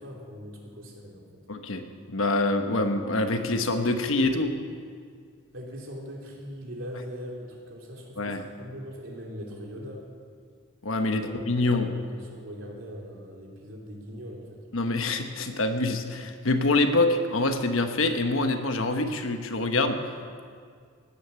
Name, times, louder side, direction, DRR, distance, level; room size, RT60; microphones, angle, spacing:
voice 1, 0.0-1.4 5.5-10.1 11.0-14.6, equal, 65° right, -1 dB, 3.1 m, -41 dB
voice 2, 1.5-1.8 2.1-4.5 8.2-8.4 10.8-11.2 11.5-11.9 14.7-20.0, left 2 dB, 70° left, 6 dB, 1.2 m, -25 dB
17.0 x 10.0 x 7.0 m, 2.1 s
head